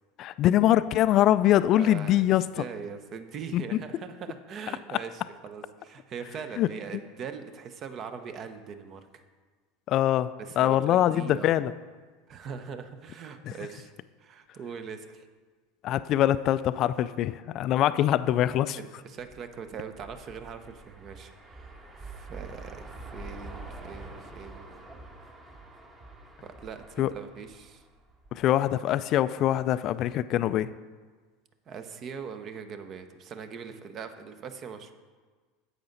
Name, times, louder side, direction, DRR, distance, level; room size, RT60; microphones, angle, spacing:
voice 1, 0.2-2.6 3.5-3.6 6.6-6.7 9.9-10.3 10.6-11.7 15.8-18.8 27.0-27.1 28.3-30.7, left 12 dB, 45° left, 14 dB, 0.3 m, -23 dB
voice 2, 1.7-2.3 2.5-9.2 10.4-11.5 12.3-13.9 14.2-15.3 18.8-24.6 26.4-27.8 31.7-34.9, right 6 dB, 40° right, 9 dB, 0.9 m, -41 dB
sound 1, 19.3-28.4, right 2 dB, 25° right, 1.5 m, -46 dB
10.0 x 8.0 x 3.9 m, 1.5 s
hypercardioid pair, 80°, 0 cm